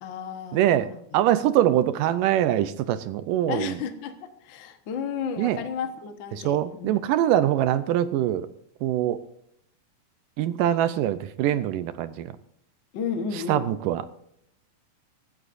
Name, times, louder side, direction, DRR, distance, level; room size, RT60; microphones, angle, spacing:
voice 1, 0.0-0.9 3.5-7.0 12.9-13.7, left 6 dB, 65° left, 6 dB, 1.2 m, -33 dB
voice 2, 0.5-3.8 5.4-5.6 6.3-8.5 8.8-9.2 10.4-12.3 13.3-14.1, right 12 dB, 80° right, 13 dB, 2.2 m, -23 dB
24.5 x 13.0 x 2.6 m, 0.73 s
omnidirectional pair, 4.1 m